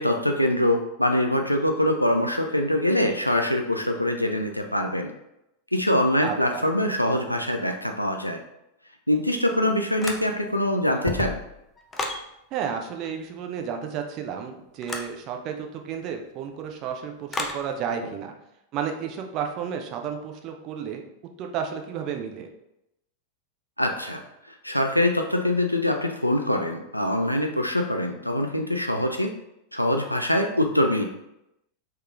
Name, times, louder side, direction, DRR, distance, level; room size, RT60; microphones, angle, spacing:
voice 1, 0.0-5.1 5.7-8.4 9.1-11.4 23.8-24.2 24.6-29.3 29.7-31.0, left 1 dB, 90° left, 4 dB, 0.3 m, -24 dB
voice 2, 6.2-6.6 12.5-18.3 18.7-21.0 21.4-22.5, right 7 dB, 40° right, 4 dB, 0.5 m, -32 dB
sound 1, 10.0-10.6 10.9-12.3 14.8-15.1 17.3-17.6, left 3 dB, 15° left, 0.4 m, -32 dB
3.5 x 3.2 x 2.4 m, 0.84 s
figure-of-eight pair, 90°, 0 cm